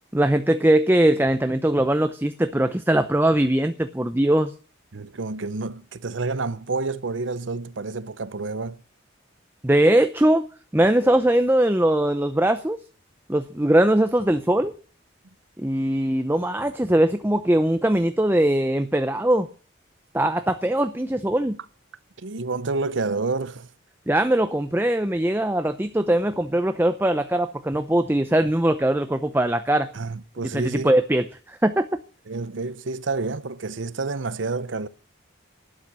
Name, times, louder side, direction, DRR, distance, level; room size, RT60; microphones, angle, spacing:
voice 1, 0.1-4.5 9.6-10.5 10.7-12.8 13.3-14.7 15.6-19.5 20.1-21.6 24.1-29.9 30.5-31.9, right 1 dB, 10° right, 0.6 m, -21 dB
voice 2, 4.9-8.8 22.2-23.7 29.9-30.9 32.3-34.9, right 3 dB, 75° right, 0.8 m, -29 dB
12.0 x 8.9 x 9.5 m
head